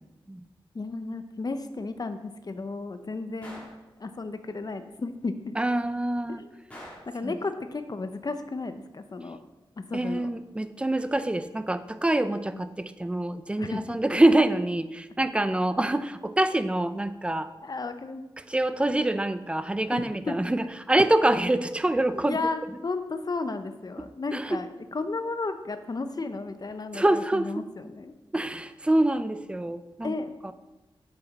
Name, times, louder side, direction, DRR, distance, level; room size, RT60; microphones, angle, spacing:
voice 1, 0.7-3.7 4.0-5.6 6.3-9.4 9.9-10.3 12.5-12.6 13.6-14.0 17.6-18.3 19.9-20.3 22.3-28.1 30.0-30.3, left 3 dB, 45° left, 9 dB, 0.6 m, -34 dB
Gunshot gunfire, 3.4-3.8 6.7-7.2, equal, 15° left, 3.1 m, -44 dB
voice 2, 5.6-6.4 7.2-7.3 9.9-17.5 18.5-22.4 24.0-24.1 24.3-24.6 26.9-27.5 28.3-30.1 30.4-30.5, right 1 dB, 10° right, 11 dB, 0.4 m, -25 dB
7.9 x 6.9 x 4.1 m, 1.1 s
wide cardioid pair, 80°, 9 cm